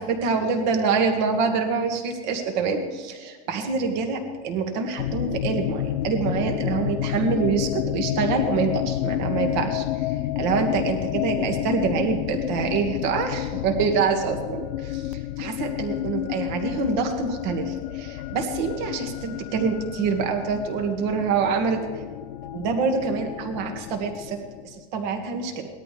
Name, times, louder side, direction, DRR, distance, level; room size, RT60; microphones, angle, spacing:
voice 1, 0.0-21.8 22.5-24.4 24.6-25.7, right 5 dB, 50° right, 4 dB, 2.2 m, -26 dB
sound 1, 5.0-24.8, left 13 dB, 70° left, 0.5 m, -30 dB
20.0 x 13.0 x 3.5 m, 1.4 s
supercardioid pair, 170°, 29 cm